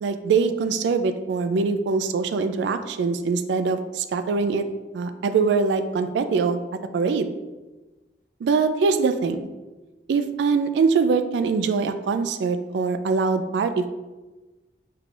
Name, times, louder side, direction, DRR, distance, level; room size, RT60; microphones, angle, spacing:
voice 1, 0.0-4.6 4.9-6.6 6.9-7.3 8.4-9.4 10.1-13.9, right 4 dB, 90° right, 9 dB, 0.3 m, -23 dB
4.6 x 3.8 x 2.4 m, 1.2 s
head